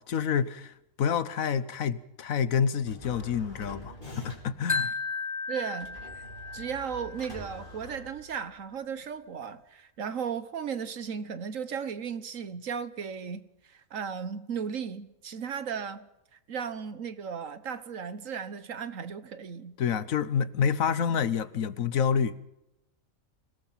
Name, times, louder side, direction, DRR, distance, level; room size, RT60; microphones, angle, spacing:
voice 1, 0.0-4.9 19.8-22.4, left 7 dB, 80° left, 1.4 m, -28 dB
sound 1, 2.8-4.7 5.8-8.7, left 1 dB, 40° left, 4.2 m, -45 dB
Wind chime, 4.7-7.8, left 4 dB, 15° left, 1.8 m, -34 dB
voice 2, 5.5-6.2 6.5-16.1 16.5-19.7, right 7 dB, 70° right, 1.6 m, -36 dB
26.0 x 18.0 x 5.7 m
omnidirectional pair, 1.4 m